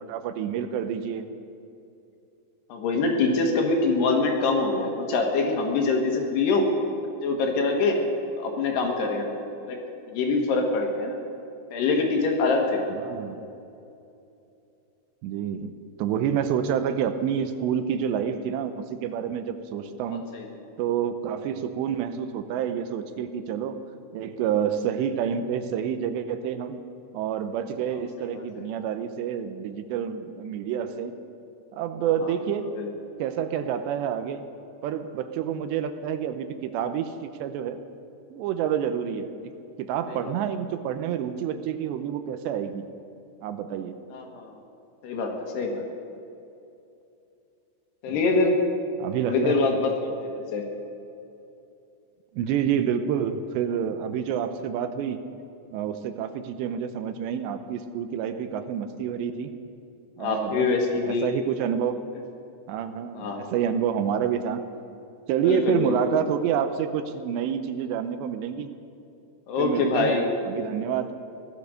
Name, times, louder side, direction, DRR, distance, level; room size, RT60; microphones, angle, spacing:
voice 1, 0.1-1.3 12.9-13.4 15.2-20.2 20.8-23.8 24.1-26.8 27.1-31.1 31.7-32.8 33.2-34.5 34.8-37.8 38.3-39.5 39.8-42.9 43.4-44.1 48.1-48.2 49.0-49.7 52.3-55.2 55.7-59.5 60.2-60.7 61.0-62.0 62.7-64.6 65.3-68.7 69.6-70.2 70.4-71.2, right 8 dB, 80° right, 10 dB, 2.9 m, -28 dB
voice 2, 2.7-6.7 7.2-8.0 8.4-9.3 9.6-9.8 10.1-11.2 11.7-12.8 20.1-20.5 28.4-28.6 32.2-32.3 32.7-32.9 40.1-40.3 44.1-44.5 45.0-45.8 48.0-48.6 49.2-50.6 60.2-61.3 63.2-63.5 65.4-66.2 69.5-70.3, left 3 dB, 70° left, 1 dB, 3.5 m, -25 dB
17.0 x 12.0 x 6.4 m, 2.7 s
omnidirectional pair, 5.1 m